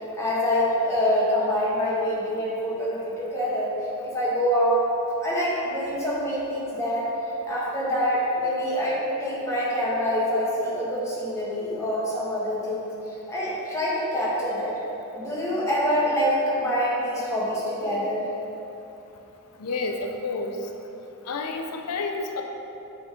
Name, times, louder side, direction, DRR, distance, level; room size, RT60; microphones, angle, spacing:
voice 1, 0.2-3.7 4.0-4.9 5.2-7.1 7.4-12.9 13.3-14.7 15.1-18.3, equal, 15° left, -8 dB, 1.6 m, -25 dB
voice 2, 19.6-20.6 21.3-22.4, left 3 dB, 90° left, 3 dB, 0.5 m, -30 dB
7.5 x 3.9 x 5.0 m, 2.9 s
head